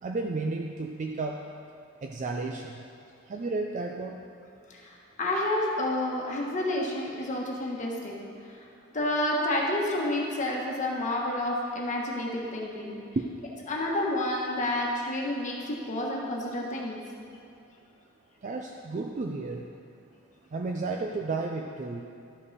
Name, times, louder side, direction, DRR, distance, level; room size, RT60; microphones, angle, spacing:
voice 1, 0.0-1.4 2.0-2.9 3.3-4.2 13.2-13.3 18.4-19.6 20.5-22.1, right 3 dB, 40° right, 2 dB, 0.4 m, -32 dB
voice 2, 4.7-8.2 8.9-13.0 13.7-17.0, left 1 dB, 40° left, -2 dB, 1.3 m, -29 dB
12.0 x 5.5 x 4.1 m, 2.7 s
head